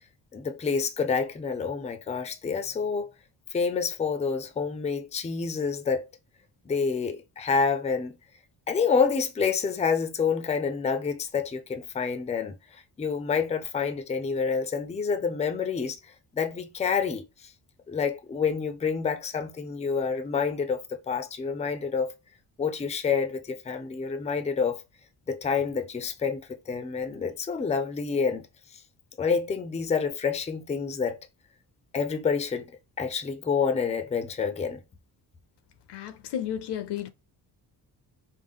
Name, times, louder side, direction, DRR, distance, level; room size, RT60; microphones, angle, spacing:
voice 1, 0.3-3.1 3.5-6.0 6.7-8.2 8.7-16.0 16.3-17.5 17.9-22.1 22.6-24.8 25.3-28.5 29.2-31.2 31.9-32.7 33.0-34.8, left 5 dB, 15° left, 0.4 m, -28 dB
voice 2, 35.9-37.1, left 10 dB, 75° left, 0.7 m, -33 dB
5.0 x 2.0 x 3.5 m
wide cardioid pair, 160°, 40 cm